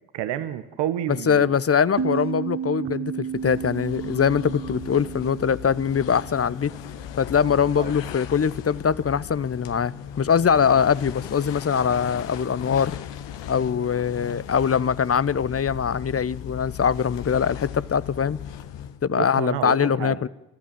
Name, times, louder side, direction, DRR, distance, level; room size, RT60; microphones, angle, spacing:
voice 1, 0.1-1.5 7.8-7.9 19.1-20.2, right 11 dB, 65° right, 1.3 m, -29 dB
voice 2, 1.3-6.7 7.2-13.0 13.5-18.4 19.0-20.3, left 7 dB, 30° left, 0.9 m, -22 dB
sound 1, 2.0-7.3, right 7 dB, 30° right, 1.5 m, -33 dB
sound 2, 3.3-19.1, left 10 dB, 70° left, 1.3 m, -37 dB
30.0 x 14.0 x 7.5 m
hypercardioid pair, 40°, 45 cm